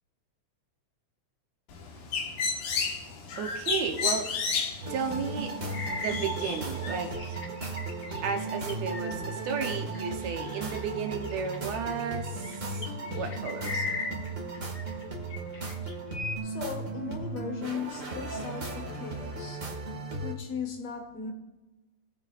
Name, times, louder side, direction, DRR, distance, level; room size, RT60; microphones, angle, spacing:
Bird, 1.7-7.1, left 5 dB, 85° left, 2.9 m, -33 dB
voice 1, 3.4-4.3 4.9-5.5 5.9-7.4 8.2-12.9 13.2-13.9, right 6 dB, 70° right, 4 dB, 1.9 m, -33 dB
sound 1, 4.8-20.3, right 2 dB, 35° right, 1.4 m, -36 dB
sound 2, 5.7-10.8 11.2-15.0 15.3-16.4, left 3 dB, 50° left, 1.1 m, -39 dB
voice 2, 16.4-19.6 20.2-21.3, left 6 dB, 65° left, 4 dB, 2.0 m, -37 dB
18.0 x 9.0 x 2.4 m, 1.1 s
omnidirectional pair, 3.5 m